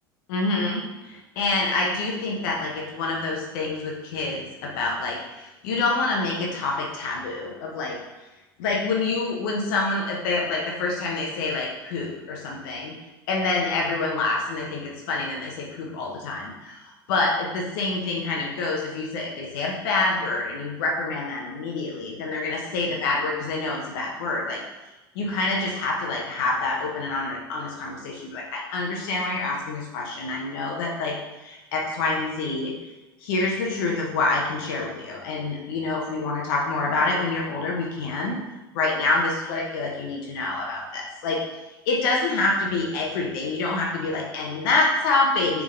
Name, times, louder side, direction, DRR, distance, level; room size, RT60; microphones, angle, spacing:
voice 1, 0.3-8.0 8.6-12.9 13.3-24.6 25.1-31.1 31.4-32.7 33.2-38.4 38.7-41.4 41.9-45.6, left 3 dB, 65° left, -2 dB, 1.1 m, -27 dB
6.4 x 3.8 x 3.8 m, 1.1 s
hypercardioid pair, 80°, 13 cm